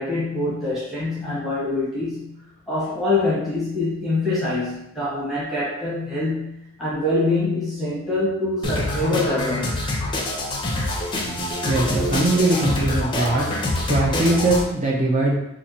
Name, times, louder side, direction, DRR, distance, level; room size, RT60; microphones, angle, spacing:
voice 1, 0.0-2.4 2.7-9.9, left 2 dB, ahead, -9 dB, 1.0 m, -25 dB
sound 1, 8.6-14.6, left 1 dB, 20° left, 0.5 m, -25 dB
voice 2, 11.6-13.5 13.8-15.4, right 2 dB, 35° right, -4 dB, 0.5 m, -21 dB
4.3 x 2.5 x 2.8 m, 0.83 s
head